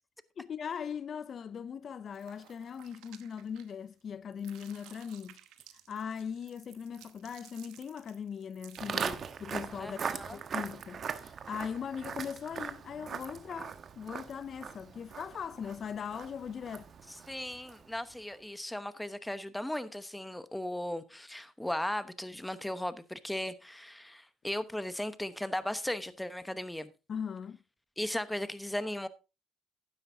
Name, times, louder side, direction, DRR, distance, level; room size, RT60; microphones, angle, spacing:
voice 1, 0.4-5.4 5.7-16.9 27.1-27.6, left 7 dB, 50° left, 0.4 m, -40 dB
sound 1, 2.1-4.0 4.3-9.2, right 13 dB, 80° right, 1.0 m, -57 dB
Walk footsteps, 8.8-18.0, right 7 dB, 50° right, 1.1 m, -40 dB
voice 2, 9.8-10.4 17.1-26.9 28.0-29.1, left 1 dB, 5° left, 1.0 m, -37 dB
12.0 x 9.7 x 2.7 m
supercardioid pair, 80°, 0 cm